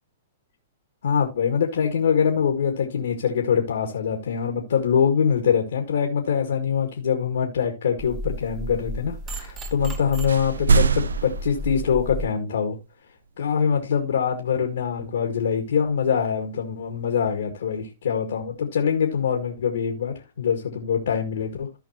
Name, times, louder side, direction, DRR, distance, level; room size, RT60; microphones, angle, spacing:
voice 1, 1.0-12.8 13.4-21.7, left 7 dB, 75° left, 2.0 m, -24 dB
sound 1, 8.0-12.3, right 1 dB, 30° right, 2.0 m, -33 dB
sound 2, 9.8-10.0 10.3-12.3, right 5 dB, 85° right, 0.5 m, -23 dB
15.0 x 5.3 x 2.9 m
hypercardioid pair, 120°, 0 cm